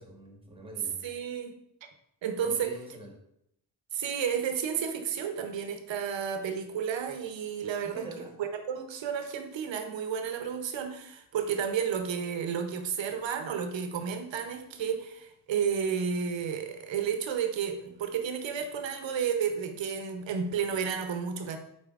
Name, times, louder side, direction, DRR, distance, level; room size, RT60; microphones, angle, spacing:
voice 1, 0.0-1.1 2.4-3.1 7.8-8.4, right 1 dB, 10° right, 1 dB, 1.1 m, -45 dB
voice 2, 1.0-1.9 2.2-2.7 3.9-8.1 8.4-21.6, right 7 dB, 70° right, 6 dB, 0.8 m, -32 dB
5.2 x 4.0 x 2.4 m, 0.77 s
cardioid pair, 65°, 46 cm